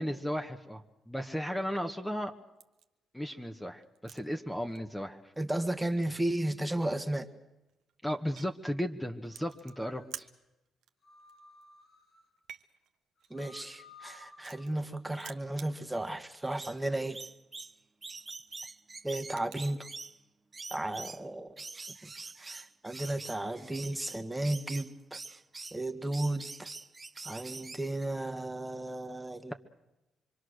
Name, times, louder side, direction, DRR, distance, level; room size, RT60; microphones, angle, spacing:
voice 1, 0.0-2.3 3.1-5.2 8.0-10.3, equal, 5° left, 5 dB, 1.5 m, -35 dB
sound 1, 2.6-2.9 3.3-4.3 4.6-5.0 5.3-5.4 5.7-6.2 7.3-7.4 7.7-8.5 9.3-10.3 10.7-10.9 11.2-11.8 12.3-14.9 15.2-16.8 17.1-17.2 17.6-17.8 18.2-19.7, right 10 dB, 80° right, 1.1 m, -51 dB
voice 2, 5.4-7.3 13.3-17.2 19.0-19.9 20.7-21.5 22.0-22.1 22.4-25.2 25.7-26.7 27.2-29.5, right 1 dB, 10° right, 8 dB, 1.6 m, -34 dB
sound 2, 9.3-10.0 11.0-12.2 13.2-14.6, left 3 dB, 70° left, 4.3 m, -55 dB
sound 3, 16.6-20.2 20.5-21.2 21.6-25.8 26.1-28.0, right 3 dB, 30° right, 0.8 m, -45 dB
26.0 x 24.0 x 6.5 m, 0.98 s
supercardioid pair, 60°, 0 cm